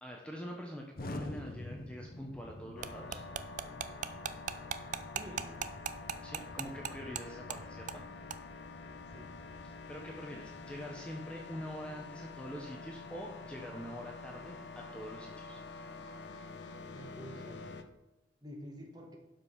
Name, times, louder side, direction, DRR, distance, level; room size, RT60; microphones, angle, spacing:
voice 1, 0.0-3.2 6.2-8.3 9.9-15.6, equal, 5° left, 0 dB, 1.0 m, -45 dB
Explosion, 0.9-10.9, left 1 dB, 55° left, 0.9 m, -49 dB
sound 1, 2.8-17.8, left 4 dB, 75° left, 0.9 m, -47 dB
sound 2, 2.8-7.2 7.5-7.6 7.9-8.0 8.3-8.4, right 7 dB, 45° right, 0.5 m, -37 dB
voice 2, 5.2-5.5 9.1-9.3 16.9-17.7 18.4-19.2, equal, 25° right, 1 dB, 1.8 m, -48 dB
12.0 x 5.1 x 5.6 m, 1.0 s
head